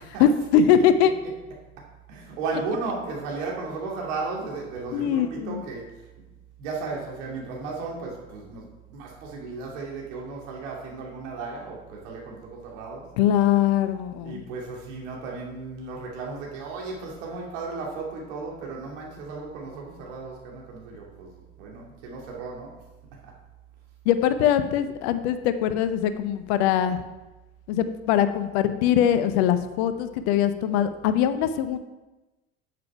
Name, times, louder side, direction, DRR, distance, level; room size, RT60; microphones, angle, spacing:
voice 1, 0.2-1.1 4.9-5.6 13.2-14.4 24.1-27.0 27.7-31.8, left 9 dB, 55° left, 11 dB, 0.8 m, -22 dB
voice 2, 2.1-6.1 6.6-13.1 14.2-22.7 23.2-23.3, right 4 dB, 60° right, -1 dB, 2.6 m, -35 dB
8.6 x 7.6 x 4.6 m, 1.1 s
figure-of-eight pair, 65°, 40 cm